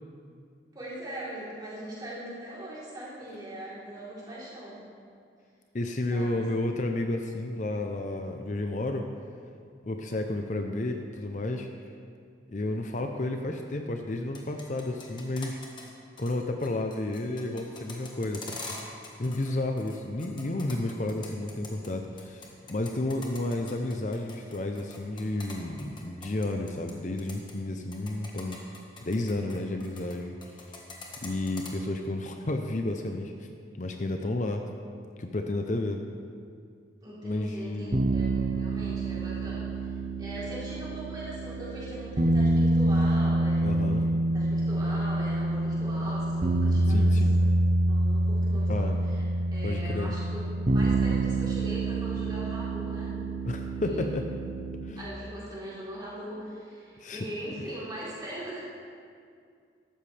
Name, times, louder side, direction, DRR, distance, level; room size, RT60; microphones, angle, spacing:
voice 1, 0.7-4.8 6.1-6.6 37.0-39.7 40.2-43.7 44.3-47.5 47.9-49.2 49.5-50.4 50.7-53.1 53.8-54.1 55.0-58.6, right 1 dB, 25° right, -8 dB, 3.6 m, -40 dB
voice 2, 5.7-9.1 9.8-11.7 12.5-15.6 16.2-18.6 19.2-28.6 29.0-30.7 31.2-33.5 33.8-34.6 35.2-36.0 37.2-38.0 43.6-44.1 46.9-47.4 48.7-49.0 49.6-50.1 53.5-54.3 54.8-55.0 57.0-57.2, left 2 dB, 40° left, 4 dB, 0.6 m, -31 dB
sound 1, 14.2-15.9 16.2-16.3 16.6-19.5 19.8-21.9 22.2-26.9 27.2-27.5 27.9-30.2 30.4-31.7, left 3 dB, 25° left, 1.4 m, -43 dB
sound 2, 37.9-54.9, right 2 dB, 40° right, 0.7 m, -27 dB
14.0 x 12.0 x 3.4 m, 2.2 s
head